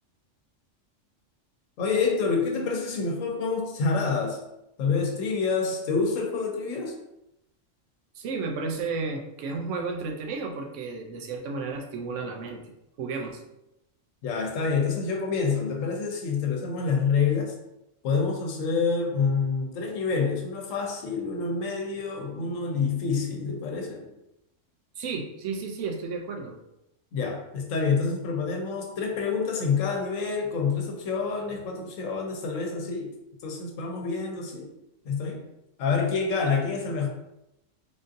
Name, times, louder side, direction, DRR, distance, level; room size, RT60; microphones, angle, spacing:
voice 1, 1.8-4.4 4.8-6.9 14.2-17.5 18.0-24.1 27.1-33.1 33.4-34.7 35.0-35.4 35.8-37.1, left 5 dB, 85° left, 2 dB, 1.1 m, -27 dB
voice 2, 8.1-12.7 13.0-13.4 25.0-26.5, right 4 dB, 75° right, 3 dB, 0.9 m, -33 dB
3.6 x 2.6 x 2.5 m, 0.86 s
omnidirectional pair, 1.3 m